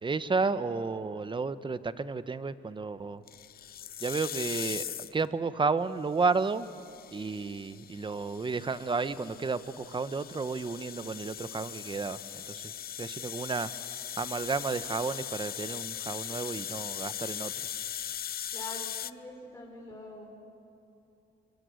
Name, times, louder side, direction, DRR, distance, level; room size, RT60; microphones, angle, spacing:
voice 1, 0.0-3.2 4.0-6.7 7.1-13.7 14.2-17.5, right 4 dB, 25° right, 13 dB, 0.9 m, -32 dB
sound 1, 3.3-5.3 6.3-19.1, left 10 dB, 50° left, 0.6 m, -40 dB
voice 2, 18.5-20.3, left 2 dB, 15° left, -3 dB, 4.2 m, -44 dB
26.0 x 22.0 x 8.3 m, 2.8 s
cardioid pair, 90°, 20 cm